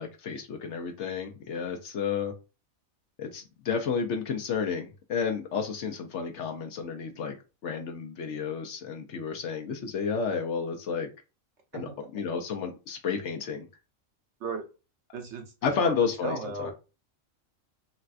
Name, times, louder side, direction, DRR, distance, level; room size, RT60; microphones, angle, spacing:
voice 1, 0.0-2.3 3.2-7.4 7.6-11.1 11.7-13.6 15.6-16.7, left 6 dB, 65° left, 4 dB, 0.9 m, -31 dB
voice 2, 15.1-15.5 15.8-15.9 16.2-16.7, right 3 dB, 60° right, 3 dB, 1.0 m, -35 dB
4.0 x 2.2 x 2.4 m, 0.30 s
omnidirectional pair, 1.4 m